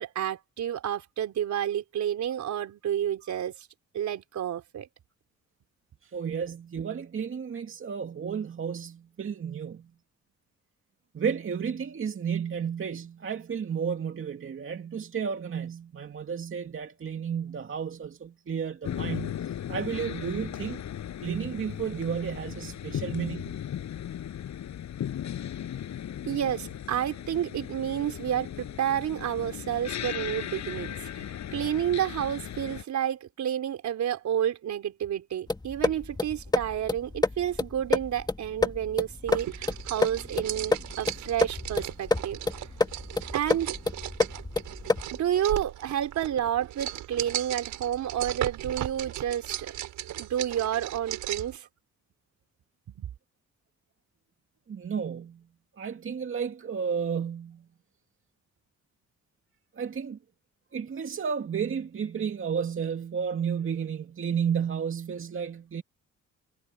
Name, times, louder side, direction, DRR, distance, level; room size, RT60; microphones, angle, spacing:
voice 1, 0.0-3.7 3.9-4.9 26.3-42.7 43.3-43.7 45.1-49.7 50.1-51.7 52.9-53.1, right 10 dB, 70° right, 4.3 m, -30 dB
voice 2, 6.0-9.9 11.1-20.8 21.2-23.6 54.7-55.4 55.8-57.7 59.8-60.2 60.7-65.8, right 7 dB, 45° right, 2.4 m, -32 dB
sound 1, 18.8-32.8, left 10 dB, 65° left, 6.5 m, -37 dB
sound 2, 35.5-45.2, left 3 dB, 15° left, 1.5 m, -29 dB
sound 3, 39.3-51.6, right 13 dB, 85° right, 7.0 m, -37 dB
cardioid pair, 90°, 30 cm